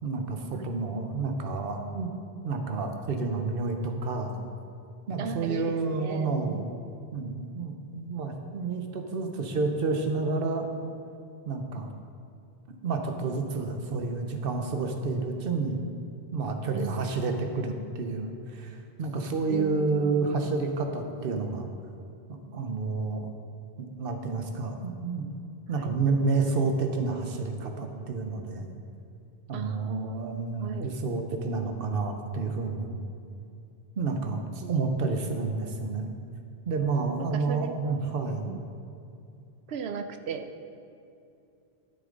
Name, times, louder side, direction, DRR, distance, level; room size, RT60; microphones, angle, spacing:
voice 1, 0.0-2.1 2.4-4.4 5.1-6.7 7.1-10.7 11.5-11.9 12.8-15.8 16.3-21.7 22.3-23.3 23.8-25.3 25.7-28.6 29.5-33.0 34.0-36.1 36.7-38.5, right 3 dB, 65° right, 5 dB, 1.0 m, -30 dB
voice 2, 5.2-6.7 16.7-17.1 19.5-20.5 25.7-26.0 29.5-30.9 34.6-35.3 37.2-38.0 38.5-38.6 39.7-40.5, right 6 dB, 85° right, 9 dB, 0.9 m, -37 dB
12.5 x 6.8 x 3.9 m, 2.6 s
omnidirectional pair, 1.0 m